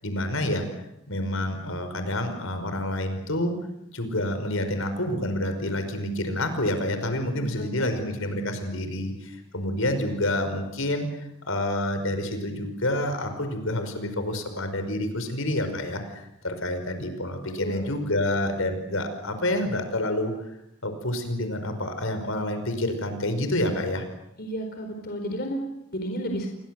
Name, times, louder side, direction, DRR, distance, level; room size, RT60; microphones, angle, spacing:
voice 1, 0.0-0.7 1.1-3.5 3.9-11.1 11.5-20.5 20.8-24.0, left 1 dB, 65° left, 8 dB, 5.3 m, -28 dB
voice 2, 7.3-8.0 17.6-17.8 24.4-26.5, equal, 45° left, 3 dB, 4.6 m, -33 dB
30.0 x 24.0 x 7.9 m, 0.85 s
head